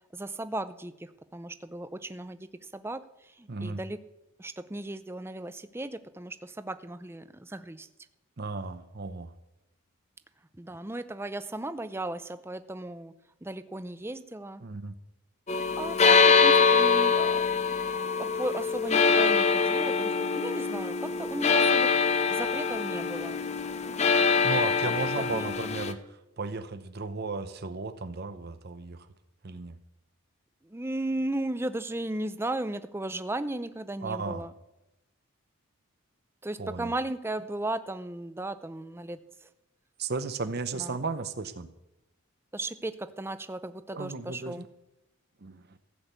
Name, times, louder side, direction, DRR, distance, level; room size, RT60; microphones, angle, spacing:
voice 1, 0.1-2.5 2.7-3.0 3.4-4.0 4.4-7.9 10.6-13.1 13.4-14.6 15.8-17.4 18.2-22.0 22.3-23.4 25.3-25.5 30.7-34.5 36.4-39.2 40.8-41.0 42.5-44.7, right 1 dB, 10° right, 12 dB, 0.5 m, -35 dB
voice 2, 3.5-3.8 8.4-9.3 14.6-15.0 24.4-29.1 29.4-29.8 34.0-34.5 36.6-36.9 40.0-41.7 43.9-44.7 45.4-45.8, right 4 dB, 45° right, 11 dB, 0.7 m, -35 dB
sound 1, 15.5-25.9, left 5 dB, 30° left, 0.7 m, -24 dB
15.0 x 6.3 x 8.1 m, 0.92 s
head